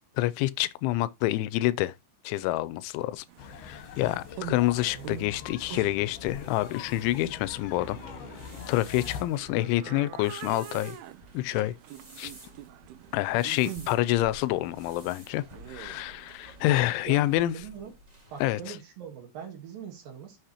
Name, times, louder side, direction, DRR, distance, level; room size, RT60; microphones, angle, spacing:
voice 1, 0.2-1.9 2.2-3.3 3.6-8.0 8.7-11.0 11.3-11.7 12.2-12.3 13.1-17.6 18.4-18.8, left 16 dB, 85° left, 3.0 m, -27 dB
sound 1, 2.4-18.5, equal, 15° right, 1.2 m, -53 dB
sound 2, 3.3-17.0, right 12 dB, 80° right, 2.4 m, -46 dB
sound 3, 3.4-9.3, left 7 dB, 70° left, 2.6 m, -43 dB
voice 2, 4.9-5.2 17.1-17.9 18.3-20.4, right 8 dB, 60° right, 2.9 m, -42 dB
11.5 x 6.2 x 3.0 m
omnidirectional pair, 5.4 m